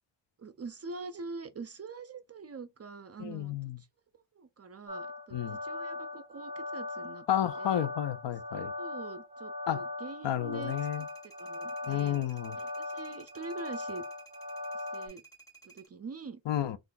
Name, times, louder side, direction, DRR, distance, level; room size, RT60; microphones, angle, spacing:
voice 1, 0.4-3.9 4.1-7.3 7.6-7.9 8.5-12.2 12.6-14.0 14.7-15.2 15.6-16.4, right 4 dB, 35° right, 0.4 m, -45 dB
voice 2, 3.2-3.8 5.3-5.6 7.3-8.7 9.7-9.8 10.2-11.0 11.9-12.6 16.5-16.8, left 12 dB, 65° left, 0.5 m, -31 dB
sound 1, 4.9-15.1, left 2 dB, 15° right, 1.2 m, -39 dB
sound 2, 10.7-15.9, right 4 dB, 10° left, 1.7 m, -55 dB
3.6 x 2.4 x 2.5 m
cardioid pair, 55°, 47 cm